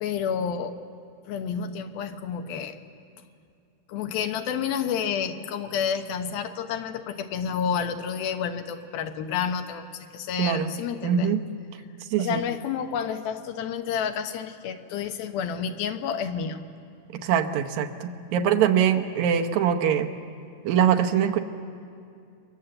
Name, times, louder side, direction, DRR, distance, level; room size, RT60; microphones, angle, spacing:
voice 1, 0.0-0.8 1.3-2.8 3.9-11.3 12.2-16.6, left 7 dB, 75° left, 6 dB, 2.8 m, -30 dB
voice 2, 10.4-10.7 11.0-11.4 12.1-12.4 17.1-20.2 20.7-21.4, right 8 dB, 70° right, 5 dB, 1.8 m, -23 dB
28.0 x 22.0 x 7.8 m, 2.4 s
omnidirectional pair, 4.4 m